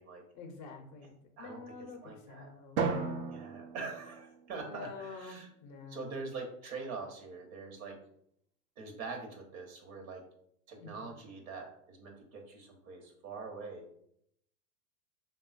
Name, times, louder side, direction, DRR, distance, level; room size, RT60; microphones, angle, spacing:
voice 1, 0.3-2.8 4.7-6.3 10.8-11.1, left 4 dB, 35° left, 3 dB, 0.5 m, -48 dB
voice 2, 2.0-2.5 3.3-5.5 5.9-8.0 8.8-10.2 10.7-13.9, right 4 dB, 65° right, 2 dB, 1.0 m, -44 dB
Drum, 2.8-5.1, right 4 dB, 45° right, 0.5 m, -36 dB
3.5 x 2.3 x 2.4 m, 0.72 s
hypercardioid pair, 105°, 46 cm